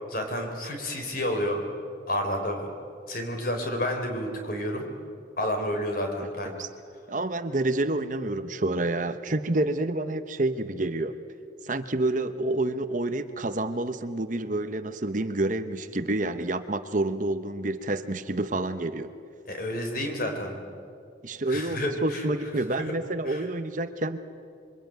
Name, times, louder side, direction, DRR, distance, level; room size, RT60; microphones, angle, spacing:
voice 1, 0.1-1.6 2.1-2.7 3.1-4.9 5.4-6.5 19.5-20.6 21.5-22.2 23.3-23.4, left 1 dB, 45° left, 4 dB, 4.2 m, -30 dB
voice 2, 7.1-11.1 11.6-19.1 21.2-24.2, right 2 dB, 40° right, 10 dB, 0.9 m, -28 dB
26.5 x 24.0 x 9.2 m, 2.4 s
head